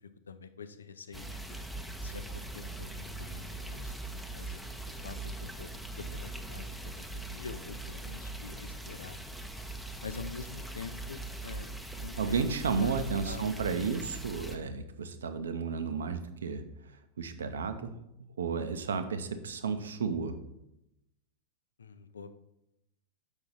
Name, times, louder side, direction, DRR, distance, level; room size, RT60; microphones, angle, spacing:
voice 1, 0.0-1.4 2.0-3.9 4.3-4.6 4.9-9.2 10.0-13.4 21.8-22.3, left 5 dB, 70° left, 11 dB, 0.5 m, -46 dB
sound 1, 1.1-14.6, right 2 dB, ahead, 0.7 m, -41 dB
voice 2, 12.2-18.0 18.4-20.4, right 5 dB, 65° right, 9 dB, 0.7 m, -33 dB
7.1 x 5.7 x 4.0 m, 0.84 s
figure-of-eight pair, 90°, 0 cm